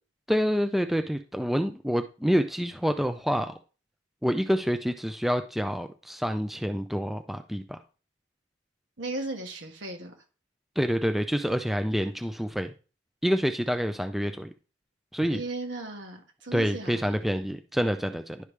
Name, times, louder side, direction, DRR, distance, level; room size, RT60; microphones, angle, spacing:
voice 1, 0.3-3.5 4.2-7.8 10.8-12.7 13.2-14.5 15.1-15.4 16.5-18.5, equal, ahead, 8 dB, 0.4 m, -27 dB
voice 2, 9.0-10.1 15.3-17.1, right 2 dB, 75° right, 3 dB, 1.6 m, -36 dB
11.0 x 5.0 x 3.2 m, 0.35 s
head